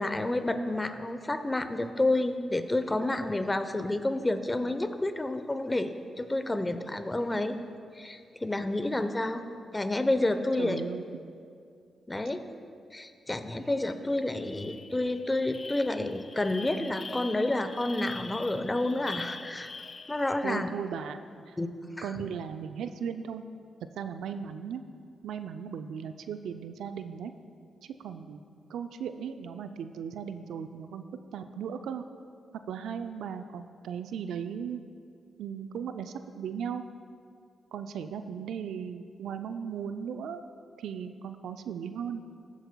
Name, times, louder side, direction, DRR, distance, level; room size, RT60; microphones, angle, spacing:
voice 1, 0.0-7.6 8.0-9.4 9.7-10.8 12.1-12.4 12.9-19.7 20.1-20.7 21.6-21.7 22.0-22.1, left 2 dB, 20° left, 9 dB, 0.7 m, -29 dB
voice 2, 10.6-11.2 20.4-21.2 21.5-21.6 22.0-23.4 24.0-24.8 25.2-27.3 27.8-28.4 28.7-31.0 31.3-32.0 32.7-34.8 35.4-36.8 37.7-40.5 40.8-42.2, right 7 dB, 80° right, 9 dB, 0.3 m, -37 dB
sound 1, 13.8-13.9 14.2-20.6, left 4 dB, 45° left, 0.3 m, -44 dB
15.0 x 8.2 x 2.2 m, 2.3 s
supercardioid pair, 45°, 0 cm